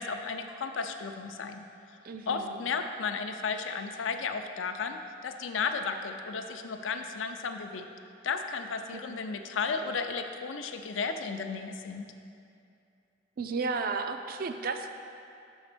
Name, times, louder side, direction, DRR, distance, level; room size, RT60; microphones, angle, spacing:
voice 1, 0.0-1.6 2.3-5.0 5.2-7.9 8.2-12.1, left 5 dB, 85° left, 6 dB, 0.5 m, -34 dB
voice 2, 2.0-2.6 8.9-9.2 13.4-14.9, right 4 dB, 50° right, 7 dB, 0.4 m, -33 dB
6.2 x 5.1 x 5.0 m, 2.5 s
head